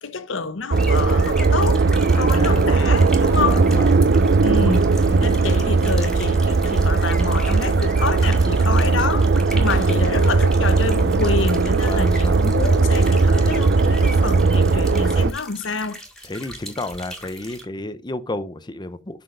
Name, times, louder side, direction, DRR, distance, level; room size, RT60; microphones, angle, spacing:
voice 1, 0.0-1.9 2.1-3.7 4.4-16.0, left 4 dB, 70° left, 0.9 m, -28 dB
sound 1, 0.7-17.6, equal, 5° left, 2.1 m, -39 dB
sound 2, 0.7-15.3, right 3 dB, 60° right, 0.6 m, -18 dB
voice 2, 2.1-2.6 3.4-3.9 5.0-5.5 9.5-10.1 11.8-12.5 16.2-19.2, left 2 dB, 25° left, 0.8 m, -32 dB
7.8 x 6.1 x 3.9 m
head